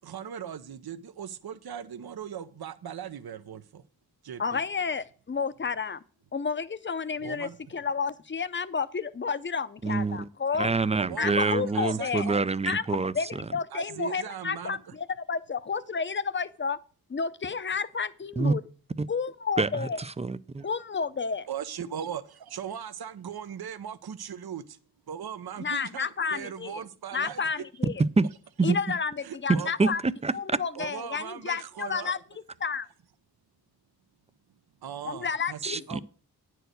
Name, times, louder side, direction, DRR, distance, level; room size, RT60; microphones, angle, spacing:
voice 1, 0.0-3.8 4.2-4.6 7.2-7.5 11.0-12.4 13.7-14.8 20.6-20.7 21.5-24.8 25.1-27.4 29.2-29.9 30.8-32.1 34.8-35.6 35.9-36.0, right 8 dB, 70° right, 0.8 m, -39 dB
voice 2, 4.4-6.0 6.3-10.7 11.2-12.3 12.7-12.8 13.1-16.8 17.1-18.6 19.1-20.0 20.6-21.5 25.6-26.8 27.1-28.0 28.6-30.0 30.3-32.2 32.6-32.9 35.0-36.0, left 5 dB, 30° left, 0.6 m, -31 dB
voice 3, 9.8-10.3 10.6-13.4 18.4-18.5 19.0-19.1 19.6-20.7 28.2-28.3 28.6-28.8 29.5-30.6 35.6-36.0, right 3 dB, 15° right, 0.4 m, -26 dB
10.0 x 4.7 x 7.9 m
wide cardioid pair, 110°, 39 cm